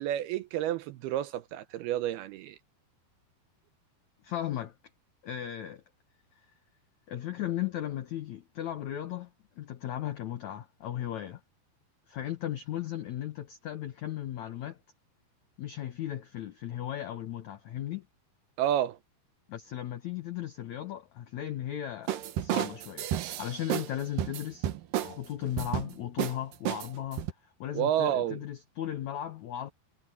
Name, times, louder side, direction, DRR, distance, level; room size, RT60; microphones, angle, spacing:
voice 1, 0.0-2.6 18.6-19.0 27.7-28.4, right 11 dB, 80° right, 2.5 m, -30 dB
voice 2, 4.2-4.7 5.2-5.8 7.1-9.3 9.6-11.4 12.1-14.8 15.6-18.0 19.5-24.7 25.0-27.3 27.6-29.7, left 11 dB, 90° left, 1.6 m, -36 dB
sound 1, 22.1-23.9 24.2-25.2 25.6-25.9 26.2-26.4 26.7-27.3, right 12 dB, 65° right, 2.5 m, -31 dB
omnidirectional pair, 5.0 m